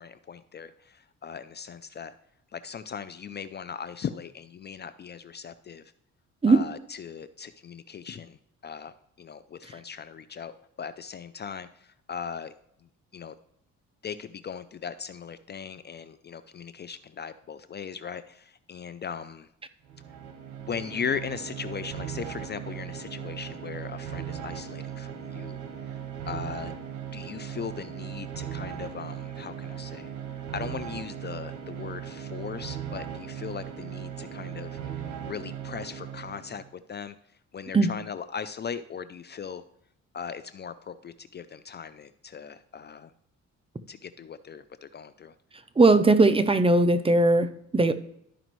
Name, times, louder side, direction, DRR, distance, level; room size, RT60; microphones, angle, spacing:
voice 1, 0.0-2.1 2.5-5.9 6.5-12.5 13.1-13.3 14.0-19.5 20.6-25.6 26.3-26.7 27.1-30.1 30.5-34.8 35.3-37.2 37.5-39.6 40.1-43.1 43.9-45.3, left 7 dB, 35° left, 13 dB, 0.4 m, -38 dB
sound 1, 19.8-36.7, right 9 dB, 85° right, 1.0 m, -38 dB
voice 2, 45.8-47.9, right 2 dB, 20° right, 11 dB, 0.6 m, -19 dB
12.5 x 5.0 x 3.1 m, 0.73 s
cardioid pair, 90°, 30 cm